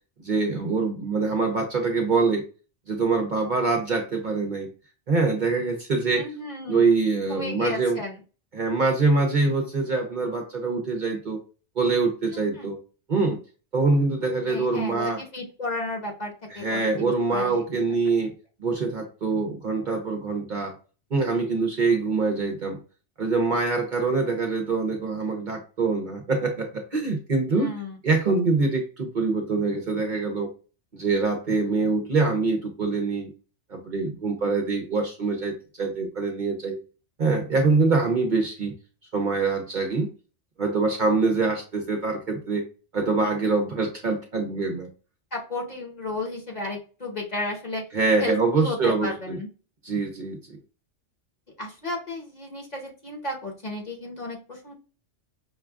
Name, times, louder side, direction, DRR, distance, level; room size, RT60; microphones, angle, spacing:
voice 1, 0.2-2.4 2.9-4.7 5.1-6.2 6.7-8.0 8.5-11.4 11.8-12.8 13.1-13.4 13.7-15.2 16.5-18.3 18.6-20.7 21.1-22.8 23.2-27.7 28.0-30.5 30.9-33.3 33.7-36.8 37.2-38.7 39.1-40.1 40.6-42.6 42.9-44.9 47.9-49.4 49.8-50.4, right 3 dB, 50° right, 3 dB, 0.7 m, -24 dB
voice 2, 6.1-6.9 7.3-8.2 12.3-12.7 14.4-17.8 27.5-28.0 45.3-47.8 48.2-49.5 51.6-54.8, left 2 dB, 40° left, 0 dB, 1.1 m, -33 dB
5.6 x 2.4 x 2.3 m, 0.35 s
omnidirectional pair, 1.2 m